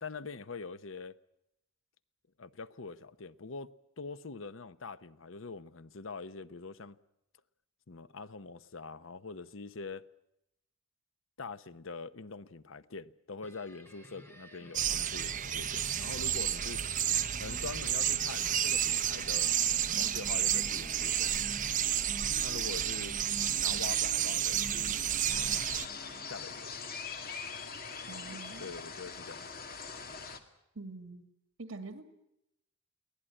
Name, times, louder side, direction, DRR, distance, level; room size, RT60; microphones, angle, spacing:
voice 1, 0.0-1.2 2.4-7.0 7.9-10.0 11.4-16.8 17.4-19.5 20.0-21.3 22.4-23.1 23.6-25.3 26.3-26.7 28.3-29.5, left 4 dB, 80° left, 0.9 m, -44 dB
sound 1, 13.4-26.6, right 1 dB, 10° left, 4.4 m, -50 dB
sound 2, 14.7-25.8, right 10 dB, 40° right, 1.0 m, -31 dB
sound 3, 25.3-30.4, left 5 dB, 50° left, 2.1 m, -42 dB
voice 2, 28.1-28.8 30.8-31.3 31.6-32.0, right 3 dB, 75° right, 2.2 m, -45 dB
23.5 x 17.5 x 9.9 m
head